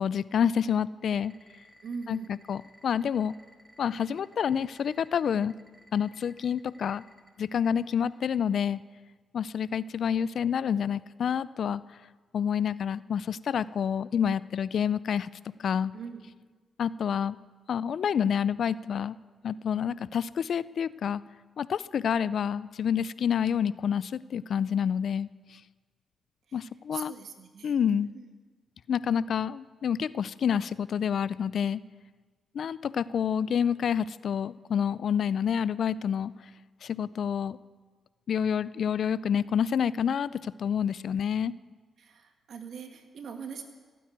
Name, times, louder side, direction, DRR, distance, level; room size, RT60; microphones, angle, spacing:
voice 1, 0.0-1.3 2.1-2.2 2.5-3.3 3.8-5.5 5.9-7.0 7.4-8.8 9.3-11.8 12.3-15.3 15.6-15.9 16.8-17.4 17.7-19.2 19.4-21.2 21.6-25.6 26.5-27.1 27.6-28.1 28.9-31.8 32.5-36.3 36.8-37.6 38.3-41.5, left 8 dB, 70° left, 18 dB, 0.4 m, -28 dB
sound 1, 1.0-8.4, right 1 dB, 10° right, 3.6 m, -56 dB
voice 2, 1.8-2.4 15.9-16.2 26.5-26.7 26.9-28.2 42.0-43.6, right 5 dB, 70° right, 5 dB, 1.9 m, -42 dB
16.0 x 9.4 x 9.4 m, 1.4 s
cardioid pair, 65°, 0 cm